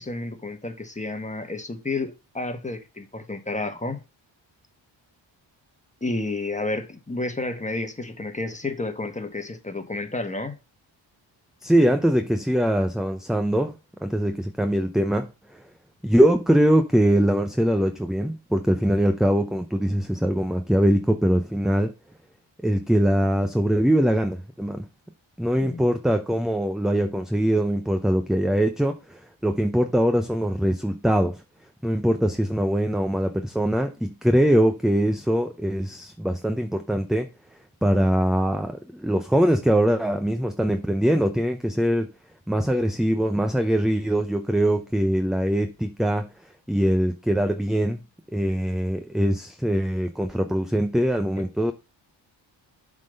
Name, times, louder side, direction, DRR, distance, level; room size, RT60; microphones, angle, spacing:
voice 1, 0.0-4.0 6.0-10.6 25.6-25.8, left 2 dB, 15° left, 1.5 m, -31 dB
voice 2, 11.6-15.6 16.0-21.9 22.6-24.9 25.4-31.4 31.8-37.3 37.8-42.1 42.5-46.3 46.7-48.0 48.3-51.7, equal, ahead, 0.6 m, -22 dB
7.4 x 3.8 x 6.6 m
cardioid pair, 80°, 47 cm